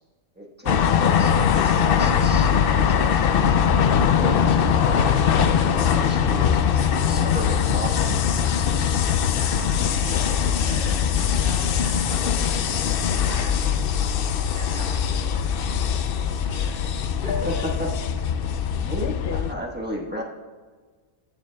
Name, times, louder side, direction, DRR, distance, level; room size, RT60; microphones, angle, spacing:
voice 1, 0.4-3.6 4.1-9.1 10.0-10.4 18.8-20.2, equal, 10° right, -2 dB, 1.0 m, -35 dB
sound 1, 0.7-19.5, left 7 dB, 70° left, 0.5 m, -21 dB
voice 2, 9.3-13.0 13.3-13.6 14.5-16.7 17.1-17.4 18.5-18.8, right 1 dB, 40° right, -6 dB, 1.8 m, -42 dB
14.0 x 8.9 x 2.2 m, 1.4 s
omnidirectional pair, 1.4 m